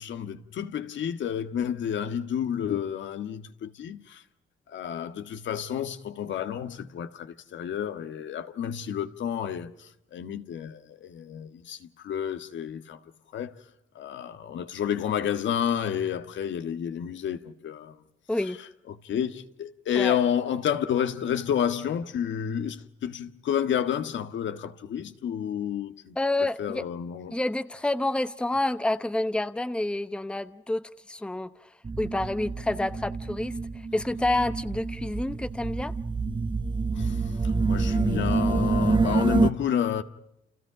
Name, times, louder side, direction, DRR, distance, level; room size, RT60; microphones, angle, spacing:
voice 1, 0.0-4.2 4.7-13.0 13.3-13.5 13.9-18.0 18.9-26.1 26.6-27.4 36.9-40.0, left 9 dB, 70° left, 1.6 m, -30 dB
voice 2, 18.3-18.6 19.9-20.2 26.2-26.8 27.3-31.7 32.0-35.9, left 2 dB, 5° left, 0.9 m, -29 dB
sound 1, 31.8-39.5, right 4 dB, 25° right, 1.1 m, -27 dB
30.0 x 29.0 x 5.0 m
cardioid pair, 90°, 20 cm